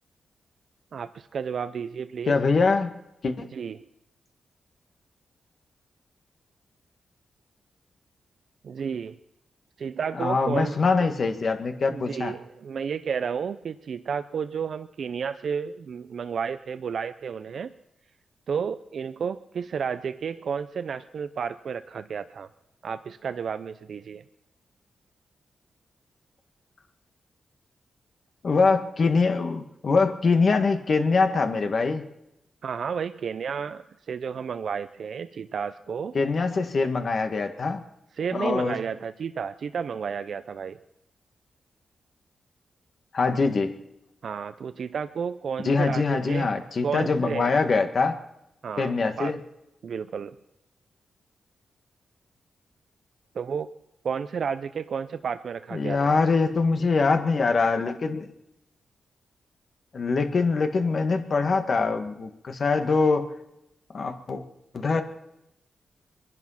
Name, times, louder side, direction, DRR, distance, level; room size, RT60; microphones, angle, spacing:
voice 1, 0.9-2.4 3.5-3.9 8.6-9.2 9.8-11.0 11.9-17.7 18.5-22.5 22.8-24.2 32.6-36.1 38.2-40.8 44.2-46.5 46.8-47.6 48.6-49.4 49.8-50.4 53.3-53.7 54.0-56.2, right 6 dB, 70° right, 11 dB, 0.5 m, -32 dB
voice 2, 2.3-2.9 3.2-3.5 10.2-12.3 28.4-32.0 36.1-37.8 38.3-38.8 43.1-43.8 45.6-48.2 48.8-49.4 55.7-58.3 59.9-63.3 63.9-64.4 64.7-65.0, left 4 dB, 55° left, 6 dB, 1.7 m, -23 dB
23.0 x 11.0 x 5.7 m, 0.85 s
cardioid pair, 65°, 0 cm